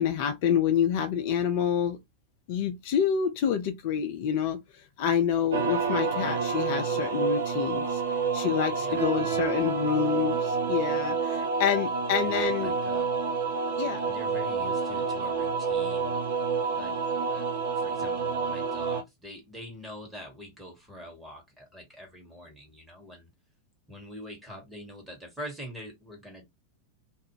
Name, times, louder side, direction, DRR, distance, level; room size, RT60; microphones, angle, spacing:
voice 1, 0.0-2.0 2.5-8.0 8.3-12.7 13.8-14.0, left 8 dB, 50° left, 0.4 m, -27 dB
sound 1, 5.5-19.0, right 5 dB, 60° right, 0.7 m, -28 dB
voice 2, 8.8-9.5 12.2-13.1 14.1-16.1 16.7-17.0 17.3-17.5 17.7-23.3 23.9-26.4, equal, 5° right, 1.3 m, -44 dB
2.5 x 2.1 x 3.0 m
figure-of-eight pair, 90°, 0 cm